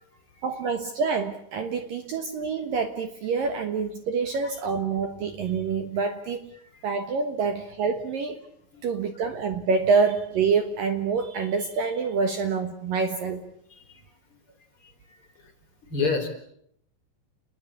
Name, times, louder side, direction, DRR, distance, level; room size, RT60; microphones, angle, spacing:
voice 1, 0.4-6.5 6.8-8.4 8.8-13.4, right 5 dB, 60° right, 7 dB, 2.7 m, -26 dB
voice 2, 13.7-14.0 14.8-15.5 15.9-16.3, left 4 dB, 30° left, 5 dB, 3.9 m, -30 dB
29.5 x 21.0 x 8.5 m, 0.72 s
omnidirectional pair, 5.2 m